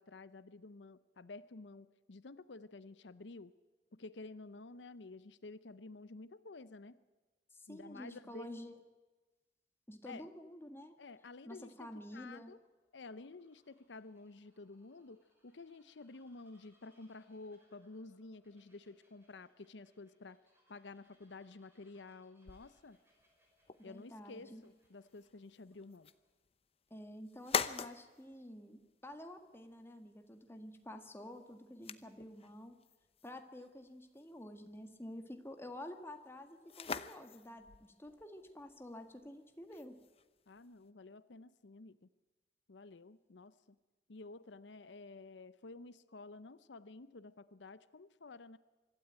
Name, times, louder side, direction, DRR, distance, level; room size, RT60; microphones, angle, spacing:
voice 1, 0.0-3.5 3.9-7.0 7.7-8.5 10.1-10.3 11.0-12.6 12.9-20.4 20.7-23.0 23.8-26.1 40.5-42.1 42.7-43.8 44.1-48.6, left 3 dB, 90° left, 15 dB, 0.7 m, -52 dB
voice 2, 7.5-8.8 9.9-10.9 11.5-12.5 23.8-24.6 26.9-32.8 33.2-40.0, left 1 dB, 15° left, 6 dB, 1.8 m, -50 dB
Bird vocalization bird call bird song, 11.3-26.3, equal, 15° right, 6.0 m, -76 dB
sound 1, 22.5-40.9, left 6 dB, 35° left, 0.8 m, -46 dB
25.0 x 13.0 x 8.9 m, 1.3 s
head